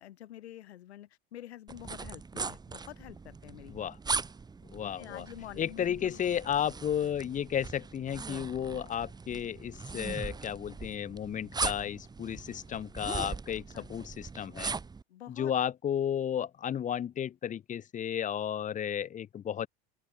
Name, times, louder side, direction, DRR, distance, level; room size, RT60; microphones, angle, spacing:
voice 1, 0.0-3.7 4.8-6.2 13.7-13.9 15.1-15.5, left 13 dB, 90° left, 4.8 m, -47 dB
sound 1, 1.7-15.0, right 4 dB, 15° right, 0.8 m, -40 dB
voice 2, 4.7-5.3 5.6-14.8 15.3-19.7, left 9 dB, 25° left, 0.6 m, -33 dB
open air
hypercardioid pair, 100°, 32 cm